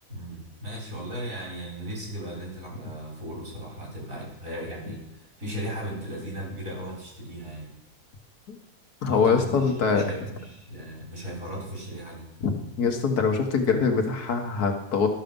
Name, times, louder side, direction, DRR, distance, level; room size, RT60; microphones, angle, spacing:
voice 1, 0.1-5.0 5.4-7.7 9.1-12.3, equal, 55° right, -4 dB, 4.2 m, -36 dB
voice 2, 9.0-10.0 12.4-12.5 12.8-15.1, left 5 dB, 75° left, 3 dB, 1.7 m, -23 dB
12.0 x 6.6 x 5.2 m, 0.90 s
omnidirectional pair, 1.7 m